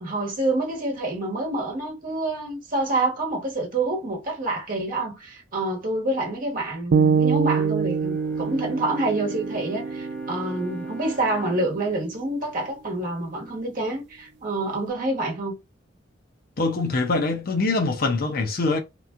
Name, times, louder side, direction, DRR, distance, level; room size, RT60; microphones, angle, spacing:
voice 1, 0.0-15.5, right 2 dB, 45° right, 1.2 m, -27 dB
sound 1, 6.9-11.0, right 6 dB, 60° right, 0.3 m, -25 dB
Bowed string instrument, 7.9-13.4, right 3 dB, 10° left, 0.8 m, -40 dB
voice 2, 16.6-18.8, left 3 dB, 50° left, 0.6 m, -23 dB
3.0 x 2.5 x 2.4 m
head